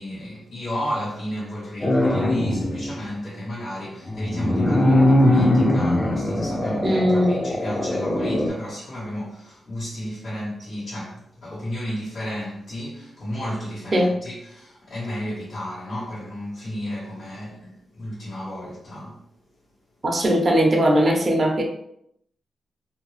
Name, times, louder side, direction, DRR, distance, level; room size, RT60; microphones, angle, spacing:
voice 1, 0.0-19.2, equal, 70° left, 1.2 m, -32 dB
sound 1, 1.8-2.9 4.1-8.5, left 1 dB, 25° left, 0.6 m, -21 dB
voice 2, 6.8-7.4 13.9-14.1 20.0-21.6, equal, 45° right, 0.7 m, -19 dB
2.7 x 2.4 x 3.1 m
supercardioid pair, 50°, 0 cm